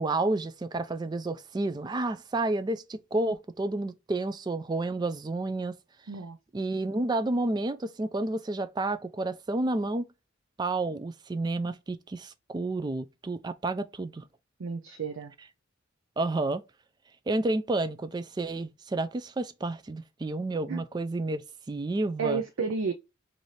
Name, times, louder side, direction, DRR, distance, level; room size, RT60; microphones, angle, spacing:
voice 1, 0.0-5.8 6.5-10.1 10.6-14.2 16.2-16.6 17.3-21.4 21.7-22.4, right 2 dB, 20° right, 0.3 m, -30 dB
voice 2, 14.6-15.3 20.7-20.8 22.2-22.9, right 4 dB, 80° right, 0.5 m, -31 dB
3.2 x 2.6 x 4.0 m
head